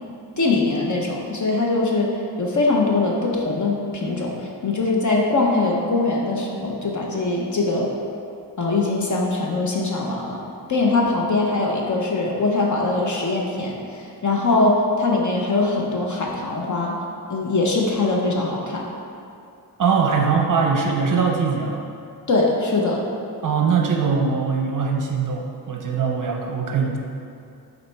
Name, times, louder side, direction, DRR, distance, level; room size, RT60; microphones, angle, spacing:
voice 1, 0.4-4.4 4.6-7.9 8.6-10.4 10.7-17.0 17.3-18.9 22.3-23.0, left 3 dB, 45° left, -1 dB, 0.7 m, -22 dB
voice 2, 19.8-21.8 23.4-27.0, right 5 dB, 50° right, 1 dB, 0.6 m, -21 dB
6.9 x 4.3 x 3.3 m, 2.6 s
wide cardioid pair, 160°, 42 cm